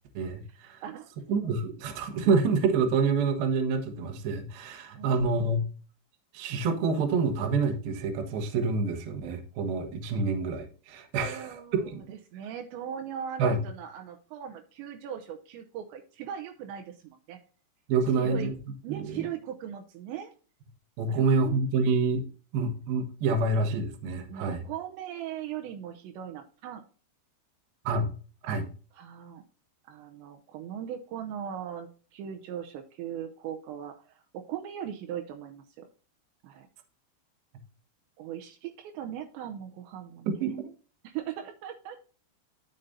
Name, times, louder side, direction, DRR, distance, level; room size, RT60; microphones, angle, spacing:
voice 1, 0.1-0.8 1.3-5.7 6.3-12.0 13.4-13.6 17.9-18.6 18.9-19.2 21.0-22.2 22.5-24.6 27.8-28.1 28.4-28.7 40.4-40.5, right 4 dB, 70° right, 6 dB, 2.7 m, -27 dB
voice 2, 5.0-5.3 11.2-11.8 12.1-17.4 18.2-18.5 18.8-20.3 21.1-21.6 24.3-26.8 29.0-29.4 29.9-35.9 36.4-36.7 38.2-40.6 41.1-42.0, right 9 dB, 85° right, 4 dB, 2.9 m, -39 dB
11.0 x 6.6 x 2.7 m, 0.38 s
omnidirectional pair, 5.3 m